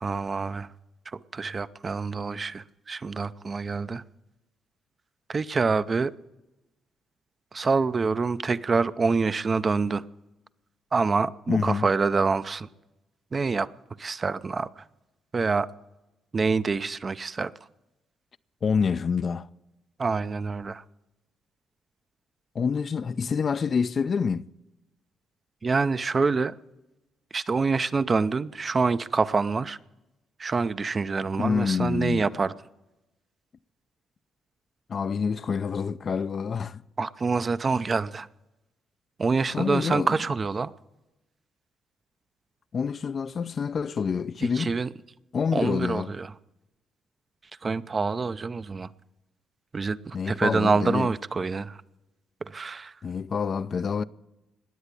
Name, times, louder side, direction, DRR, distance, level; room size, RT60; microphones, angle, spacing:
voice 1, 0.0-0.7 1.3-4.0 5.3-6.1 7.5-10.0 10.9-12.7 13.3-13.7 14.0-14.8 15.3-15.7 16.3-17.5 20.0-20.8 25.6-26.5 27.3-29.8 30.4-32.5 37.0-38.3 39.2-40.7 44.4-44.9 45.5-46.3 47.6-48.9 49.7-51.8 52.4-52.9, right 4 dB, 35° right, 0.5 m, -26 dB
voice 2, 11.5-11.9 18.6-19.5 22.5-24.5 31.4-32.3 34.9-36.8 39.5-40.1 42.7-44.8 45.3-46.1 50.1-51.1 53.0-54.0, left 6 dB, 45° left, 0.5 m, -27 dB
20.0 x 8.0 x 8.4 m
cardioid pair, 90°, 0 cm